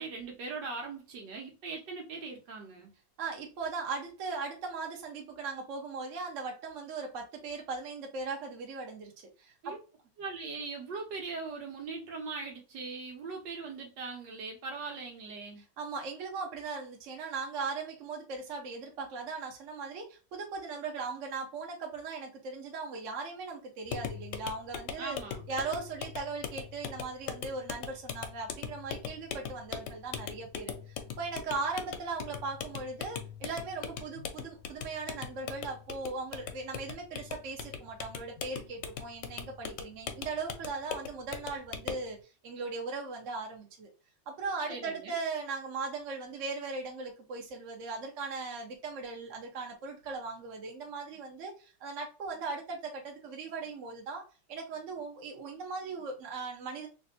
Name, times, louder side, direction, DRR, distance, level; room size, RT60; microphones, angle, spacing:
voice 1, 0.0-2.9 9.6-9.8 10.2-15.6 25.0-25.4 44.7-45.1, right 4 dB, 70° right, 1.5 m, -40 dB
voice 2, 3.2-9.1 9.4-9.8 15.8-25.2 25.5-42.2 42.4-43.9 44.3-54.2 54.5-56.9, right 4 dB, 55° right, 0.9 m, -38 dB
sound 1, 23.9-42.1, left 7 dB, 75° left, 1.1 m, -41 dB
3.3 x 2.6 x 2.6 m
omnidirectional pair, 2.1 m